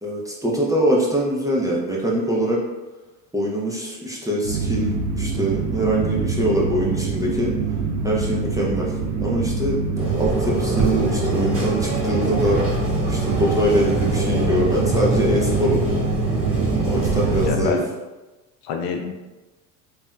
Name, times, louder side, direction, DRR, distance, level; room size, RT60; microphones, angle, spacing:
voice 1, 0.0-2.6 3.3-7.5 8.0-8.9 9.2-9.8 10.2-12.6 13.1-16.0 16.8-17.8, equal, 5° right, -5 dB, 0.6 m, -23 dB
sound 1, 4.4-17.7, right 4 dB, 50° right, 0.6 m, -25 dB
sound 2, 10.0-17.5, right 2 dB, 30° right, 1.0 m, -25 dB
voice 2, 17.3-17.8 18.6-19.1, left 5 dB, 55° left, 4 dB, 0.5 m, -26 dB
3.3 x 2.7 x 2.2 m, 1.1 s
hypercardioid pair, 75°, 47 cm